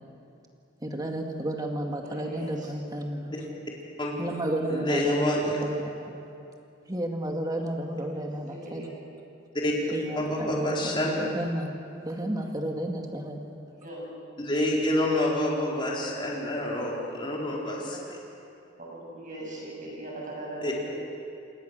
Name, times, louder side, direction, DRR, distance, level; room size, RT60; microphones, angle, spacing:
voice 1, 0.8-3.4 4.2-6.1 6.9-8.9 9.9-11.7 12.0-13.4, right 1 dB, 20° right, 2 dB, 2.2 m, -32 dB
voice 2, 2.0-2.7 8.1-8.9 13.7-14.1 17.9-18.0 18.8-20.9, right 1 dB, 45° right, -2 dB, 7.5 m, -40 dB
voice 3, 4.7-5.6 9.6-9.7 10.2-11.1 14.4-18.2 20.6-20.7, left 1 dB, 25° left, -3 dB, 4.3 m, -28 dB
28.0 x 20.5 x 6.7 m, 2.6 s
head